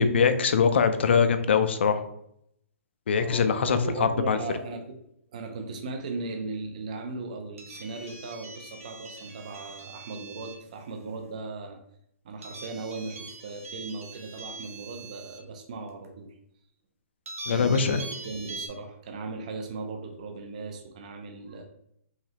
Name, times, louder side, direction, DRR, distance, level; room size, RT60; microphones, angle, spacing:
voice 1, 0.0-2.0 3.1-4.4 17.5-18.0, left 6 dB, 45° left, 10 dB, 0.4 m, -22 dB
voice 2, 3.2-5.0 5.3-11.8 12.2-16.3 17.5-21.6, right 3 dB, 30° right, 3 dB, 0.5 m, -37 dB
sound 1, 7.6-10.7 12.4-15.4 16.0-16.1 17.3-18.7, right 3 dB, 65° right, 1.1 m, -42 dB
4.8 x 3.1 x 2.9 m, 0.72 s
hypercardioid pair, 180°, 8 cm